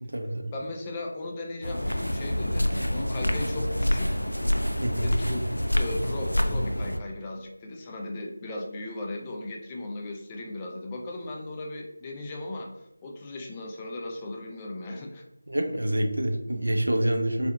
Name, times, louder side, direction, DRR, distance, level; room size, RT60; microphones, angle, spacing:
voice 1, 0.0-0.5 4.8-5.1 15.5-17.5, right 1 dB, 70° right, 4 dB, 0.6 m, -27 dB
voice 2, 0.5-4.2 5.0-5.4 5.7-12.7 13.0-15.2, left 2 dB, 15° left, 0 dB, 0.4 m, -37 dB
sound 1, 1.6-7.0, equal, 85° left, 0.4 m, -27 dB
4.1 x 2.7 x 2.3 m, 0.85 s
figure-of-eight pair, 165°, 0 cm